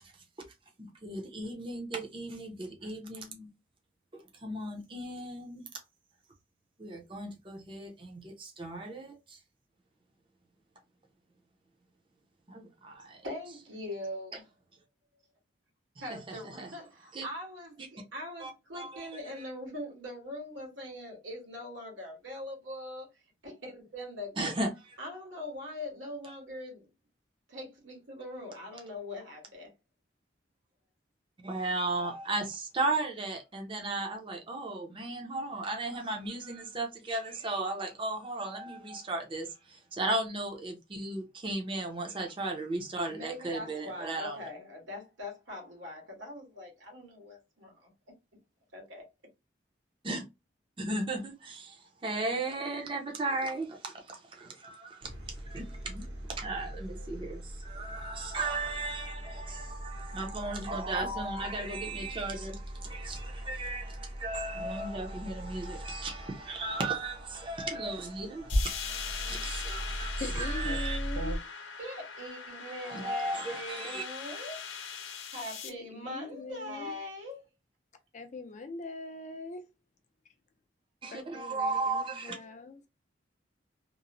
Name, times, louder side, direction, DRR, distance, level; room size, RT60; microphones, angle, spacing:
voice 1, 0.8-3.5 4.1-5.7 6.8-9.4 12.5-13.2 16.1-16.7 17.1-17.2 18.4-18.5 18.7-19.4 24.4-24.7 31.4-44.4 50.0-50.2 50.8-71.0 72.8-74.0 81.0-82.4, right 2 dB, 25° right, 0.5 m, -36 dB
voice 2, 13.2-14.4 16.0-24.5 25.0-26.9 27.5-29.7 43.1-47.9 48.7-49.1 71.8-74.7 75.3-77.5, left 1 dB, 85° right, 1.4 m, -42 dB
sound 1, 55.0-71.4, equal, 60° right, 0.8 m, -39 dB
sound 2, 68.5-75.7, left 6 dB, 85° left, 0.7 m, -41 dB
voice 3, 70.2-71.4 75.6-76.9 78.1-79.7 81.0-82.9, left 3 dB, 40° left, 0.4 m, -42 dB
2.9 x 2.0 x 2.5 m
head